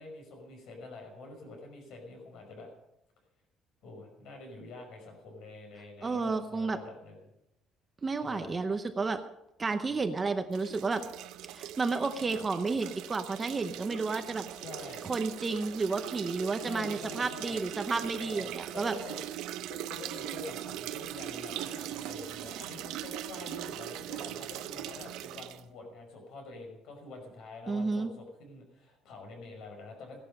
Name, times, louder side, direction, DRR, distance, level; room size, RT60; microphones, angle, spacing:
voice 1, 0.0-2.7 3.8-7.3 8.2-8.6 14.6-15.0 16.6-17.6 18.2-19.2 19.7-30.2, left 3 dB, 60° left, 3 dB, 5.5 m, -46 dB
voice 2, 6.0-6.8 8.0-9.2 9.6-11.0 11.5-14.4 15.0-19.0 27.7-28.1, right 4 dB, 15° right, 8 dB, 0.7 m, -31 dB
sound 1, 10.5-25.6, right 12 dB, 75° right, 0.7 m, -40 dB
16.5 x 11.5 x 5.4 m, 0.85 s
cardioid pair, 180°, 0 cm